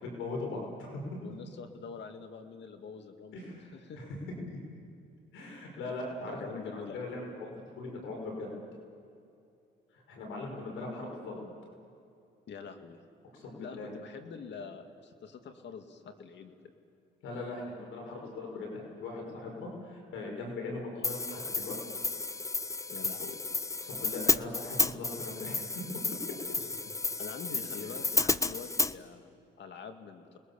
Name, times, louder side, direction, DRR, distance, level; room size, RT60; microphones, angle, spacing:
voice 1, 0.0-1.0 3.3-4.1 4.5-4.6 5.3-8.5 9.9-11.4 13.3-13.9 17.2-21.8 23.8-25.7 27.8-27.9, left 2 dB, 85° left, 0 dB, 5.4 m, -40 dB
voice 2, 1.2-4.0 6.3-7.0 12.5-13.0 13.6-16.7 22.9-23.4 26.6-26.7 27.2-30.4, left 5 dB, 65° left, 6 dB, 2.3 m, -45 dB
Hi-hat, 21.0-28.9, left 3 dB, 15° left, 0.6 m, -32 dB
29.5 x 21.0 x 7.1 m, 2.6 s
cardioid pair, 90°, 20 cm